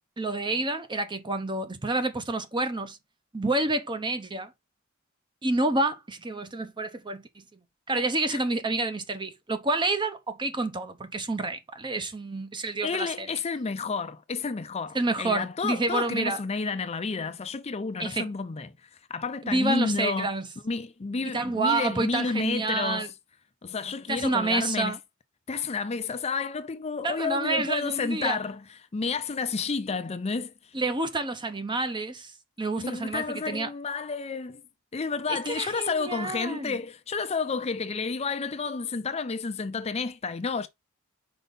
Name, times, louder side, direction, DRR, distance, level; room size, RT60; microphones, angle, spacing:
voice 1, 0.2-3.0 3.3-4.5 5.4-7.3 7.9-13.3 14.9-16.4 18.0-18.3 19.4-20.5 21.2-23.1 24.1-25.0 27.0-28.4 30.7-32.3 32.6-33.7 35.3-36.8, right 2 dB, 20° right, 0.7 m, -28 dB
voice 2, 12.5-20.4 20.6-23.1 23.6-25.0 25.5-28.6 28.9-30.5 32.8-34.6 34.9-40.7, left 4 dB, 30° left, 0.5 m, -31 dB
5.2 x 4.7 x 4.1 m
head